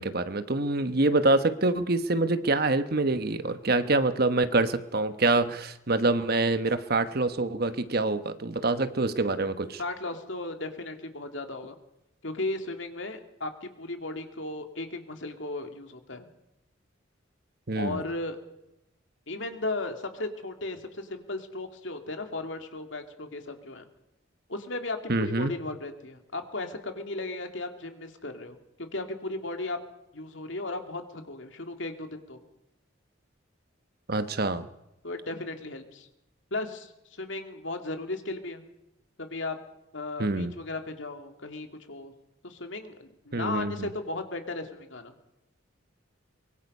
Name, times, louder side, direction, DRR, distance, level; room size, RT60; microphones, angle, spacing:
voice 1, 0.0-9.8 17.7-18.0 25.1-25.5 34.1-34.7 40.2-40.5 43.3-43.9, right 2 dB, 50° right, 11 dB, 1.2 m, -26 dB
voice 2, 9.8-11.8 12.2-16.3 17.8-18.4 19.3-23.9 24.5-28.6 28.9-29.8 30.1-32.4 35.0-36.1 36.5-38.6 39.2-39.6 39.9-42.1 42.4-45.1, left 2 dB, 65° left, 6 dB, 2.6 m, -36 dB
24.0 x 23.0 x 5.5 m, 0.88 s
head